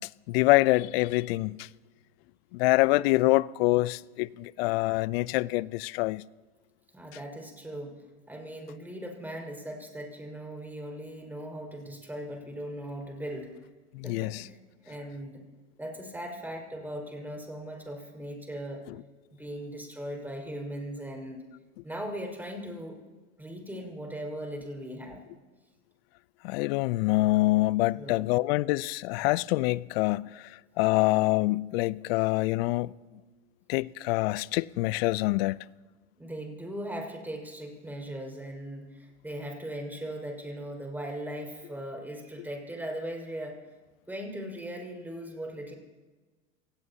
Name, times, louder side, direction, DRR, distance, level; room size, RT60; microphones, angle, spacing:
voice 1, 0.3-1.7 2.5-6.2 13.9-14.4 26.4-30.5 30.8-32.9 33.7-35.6, left 20 dB, 55° left, 0.5 m, -25 dB
voice 2, 6.9-8.0 8.3-13.5 14.0-14.6 14.8-15.3 15.8-18.8 19.3-21.4 21.8-23.0 23.4-25.2 28.0-28.3 36.2-43.6 44.1-45.7, right 1 dB, 5° right, 4.8 m, -39 dB
28.0 x 18.0 x 2.8 m
hypercardioid pair, 100°, 36 cm